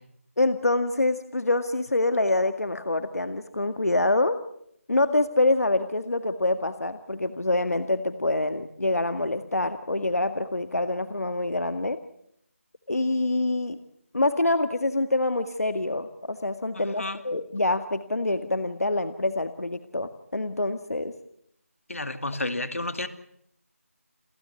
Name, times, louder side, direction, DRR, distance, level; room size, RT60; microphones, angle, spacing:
voice 1, 0.4-4.4 4.9-12.0 12.9-13.8 14.1-21.1, left 2 dB, 80° left, 9 dB, 1.8 m, -26 dB
voice 2, 21.9-23.1, left 2 dB, 65° left, 10 dB, 2.4 m, -30 dB
29.0 x 14.5 x 9.6 m, 0.72 s
figure-of-eight pair, 175°, 8 cm